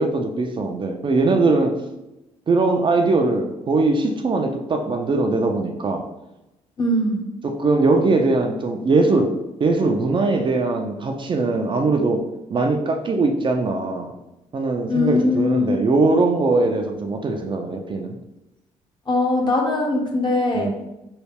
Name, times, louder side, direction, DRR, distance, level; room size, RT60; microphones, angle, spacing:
voice 1, 0.0-1.7 2.5-6.1 7.4-9.3 9.6-14.1 14.5-18.2 20.5-20.7, right 3 dB, 40° right, 4 dB, 0.5 m, -21 dB
voice 2, 6.8-7.3 14.9-15.8 19.1-20.7, left 2 dB, 35° left, 0 dB, 1.0 m, -21 dB
3.2 x 2.3 x 3.4 m, 0.94 s
supercardioid pair, 60°, 13 cm